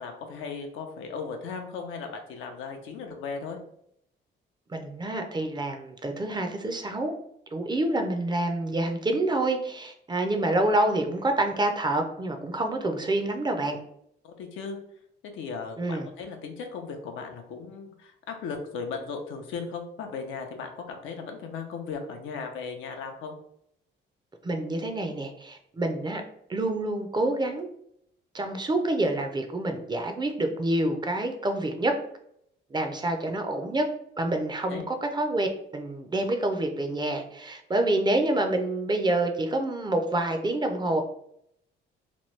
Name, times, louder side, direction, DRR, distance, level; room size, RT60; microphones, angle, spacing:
voice 1, 0.0-3.6 14.2-14.8 15.2-23.3 33.3-33.5 34.7-34.8, left 5 dB, 85° left, 4 dB, 0.6 m, -37 dB
voice 2, 4.7-7.1 7.5-13.8 15.8-16.1 24.4-26.2 26.5-27.7 28.3-32.0 32.7-33.9 34.2-41.0, right 1 dB, 20° right, 5 dB, 0.5 m, -27 dB
3.0 x 2.2 x 3.1 m, 0.72 s
cardioid pair, 90°, 20 cm